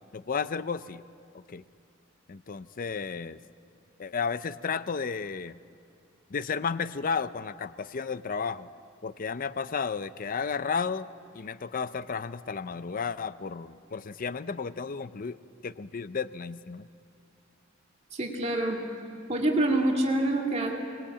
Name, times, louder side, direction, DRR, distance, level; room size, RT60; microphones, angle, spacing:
voice 1, 0.1-1.0 1.5-1.6 2.3-3.4 4.0-5.6 6.3-8.7 9.0-11.1 11.3-15.4 15.6-16.9, left 5 dB, 40° left, 14 dB, 0.5 m, -33 dB
voice 2, 18.1-18.8 19.3-20.7, right 1 dB, 30° right, 0 dB, 2.1 m, -26 dB
25.0 x 20.0 x 8.7 m, 2.6 s
head